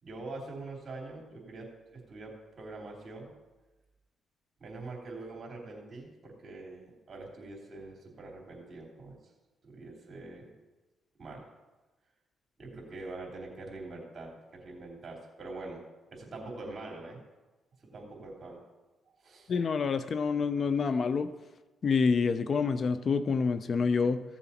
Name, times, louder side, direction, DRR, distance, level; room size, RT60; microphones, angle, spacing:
voice 1, 0.0-3.3 4.6-9.2 9.6-10.6 11.2-11.5 12.6-15.8 16.1-17.2 17.8-18.6 19.2-19.5, right 2 dB, 45° right, -1 dB, 3.5 m, -44 dB
voice 2, 19.5-21.3 21.8-24.2, left 5 dB, 50° left, 12 dB, 0.5 m, -27 dB
16.0 x 7.1 x 4.3 m, 1.2 s
cardioid pair, 90°, 0 cm